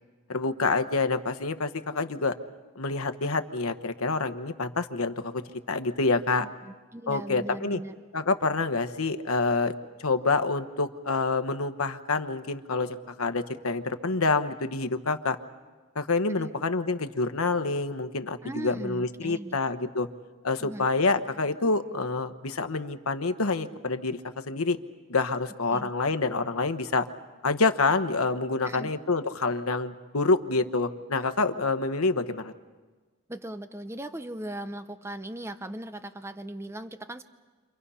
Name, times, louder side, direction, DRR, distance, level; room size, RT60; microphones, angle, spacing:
voice 1, 0.3-2.3 2.7-5.4 5.7-6.5 7.1-7.8 8.1-9.7 10.0-15.4 15.9-20.1 20.4-24.2 24.5-24.8 25.1-27.1 27.4-32.5, left 3 dB, 85° left, 9 dB, 1.1 m, -27 dB
voice 2, 6.6-7.9 16.3-16.5 18.4-19.6 20.6-20.9 25.7-25.9 28.6-28.9 33.3-37.2, right 1 dB, 10° right, 10 dB, 0.7 m, -38 dB
30.0 x 26.5 x 5.7 m, 1.4 s
head